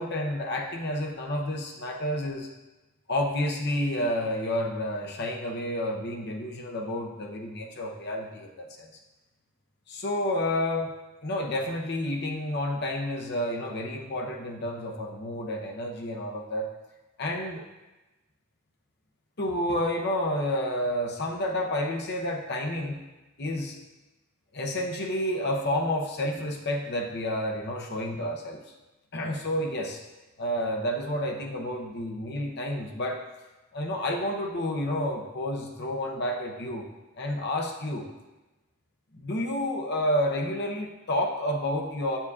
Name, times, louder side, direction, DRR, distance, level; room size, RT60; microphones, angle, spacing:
voice 1, 0.0-2.5 3.1-8.9 9.9-10.9 11.2-16.7 17.2-17.6 19.4-23.0 23.4-23.8 24.5-28.6 29.1-30.0 30.4-33.2 33.7-36.9 37.2-38.1 39.1-42.2, left 1 dB, 50° left, 1 dB, 0.8 m, -30 dB
7.1 x 6.6 x 2.4 m, 1.1 s
head